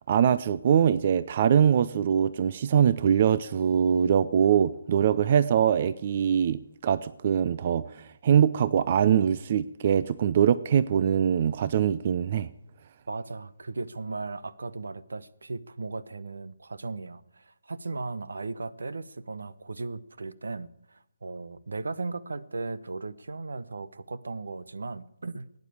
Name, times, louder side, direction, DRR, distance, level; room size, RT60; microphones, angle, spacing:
voice 1, 0.1-12.5, right 8 dB, 45° right, 16 dB, 0.6 m, -23 dB
voice 2, 13.1-25.5, right 3 dB, 75° right, 18 dB, 0.9 m, -37 dB
16.5 x 9.5 x 8.5 m, 0.80 s
figure-of-eight pair, 145°, 0 cm